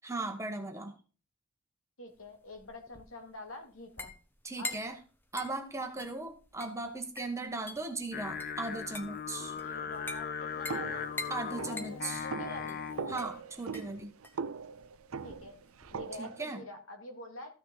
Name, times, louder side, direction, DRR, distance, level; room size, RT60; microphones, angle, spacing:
voice 1, 0.0-0.9 4.4-5.0 5.3-9.6 11.3-12.2 13.1-14.1 16.2-16.6, right 3 dB, 15° right, 5 dB, 1.2 m, -38 dB
voice 2, 2.0-4.1 4.6-4.8 9.6-11.1 11.6-12.8 15.2-15.6 15.9-17.5, left 2 dB, 65° left, 5 dB, 2.3 m, -46 dB
sound 1, 2.1-16.1, left 2 dB, 10° left, 0.9 m, -46 dB
Singing, 8.1-13.3, left 7 dB, 40° left, 0.6 m, -39 dB
sound 2, 10.7-16.4, right 5 dB, 70° right, 0.5 m, -41 dB
14.0 x 6.7 x 4.0 m, 0.36 s
head